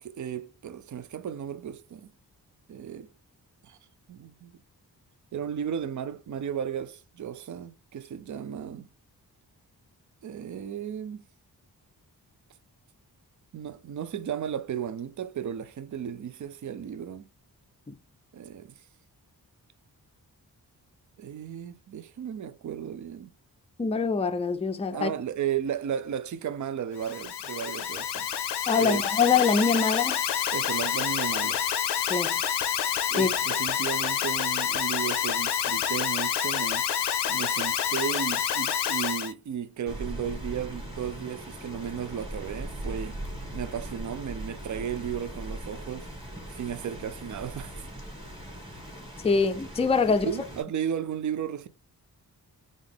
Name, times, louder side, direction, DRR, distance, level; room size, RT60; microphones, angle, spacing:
voice 1, 0.0-2.1 2.7-3.1 3.6-3.8 4.1-4.6 5.3-8.9 10.2-11.2 13.5-17.3 18.3-18.7 21.2-23.3 24.9-28.3 28.8-29.0 30.5-31.6 33.1-36.9 37.3-43.2 43.5-46.1 46.5-47.8 50.1-51.7, right 8 dB, 50° right, 0.5 m, -34 dB
voice 2, 23.8-25.1 28.7-30.2 32.1-32.4 33.2-33.3 49.2-50.3, left 5 dB, 15° left, 0.5 m, -24 dB
Alarm, 27.0-39.3, left 9 dB, 90° left, 0.6 m, -28 dB
Rain, 39.9-50.6, right 1 dB, 10° right, 1.9 m, -40 dB
3.6 x 2.5 x 3.5 m
cardioid pair, 45°, 40 cm